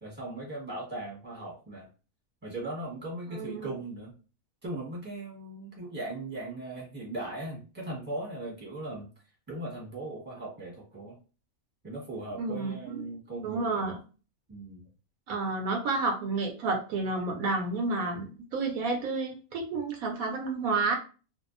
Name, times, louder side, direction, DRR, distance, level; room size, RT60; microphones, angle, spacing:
voice 1, 0.0-1.9 2.4-4.1 4.6-9.1 9.5-11.2 11.8-14.0 14.5-14.8, right 2 dB, 10° right, -5 dB, 1.0 m, -38 dB
voice 2, 3.3-3.7 12.4-13.1 13.4-14.0 15.3-21.0, right 3 dB, 75° right, 3 dB, 1.0 m, -30 dB
2.6 x 2.3 x 2.4 m, 0.35 s
omnidirectional pair, 1.5 m